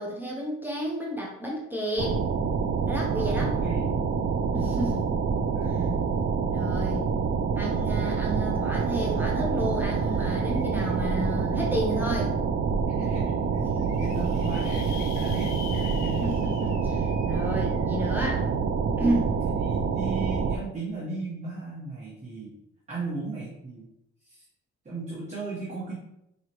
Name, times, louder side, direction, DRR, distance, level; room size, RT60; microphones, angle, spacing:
voice 1, 0.0-2.2 2.9-3.5 4.5-5.1 5.6-5.8 6.5-7.1 7.6-12.3 16.2-18.4 19.0-19.3, equal, 5° right, -3 dB, 0.8 m, -31 dB
sound 1, 2.0-20.6, right 5 dB, 40° right, 0.4 m, -27 dB
voice 2, 3.1-4.0 5.5-6.0 12.9-16.3 19.6-22.5 22.9-23.9 24.2-24.4 24.8-26.0, right 3 dB, 25° right, -7 dB, 1.3 m, -35 dB
sound 2, 9.1-9.2 9.5-11.6 12.2-12.3 12.6-12.7 12.9-13.0 13.6-18.1, left 10 dB, 65° left, 0.5 m, -46 dB
4.7 x 3.1 x 3.0 m, 0.82 s
cardioid pair, 90°, 30 cm